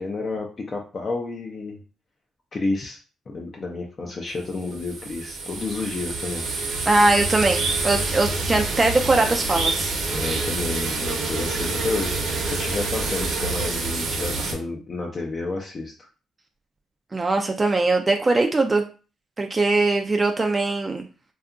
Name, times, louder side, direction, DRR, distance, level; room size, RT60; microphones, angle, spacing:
voice 1, 0.0-1.8 2.5-3.0 3.3-6.4 10.1-16.1, left 3 dB, 40° left, 0 dB, 0.4 m, -30 dB
sound 1, 4.5-14.5, right 3 dB, 75° right, 0.8 m, -27 dB
voice 2, 6.9-9.9 17.1-18.8 19.4-21.0, right 2 dB, 25° right, 4 dB, 0.3 m, -21 dB
2.7 x 2.3 x 2.4 m, 0.35 s
cardioid pair, 90°, 0 cm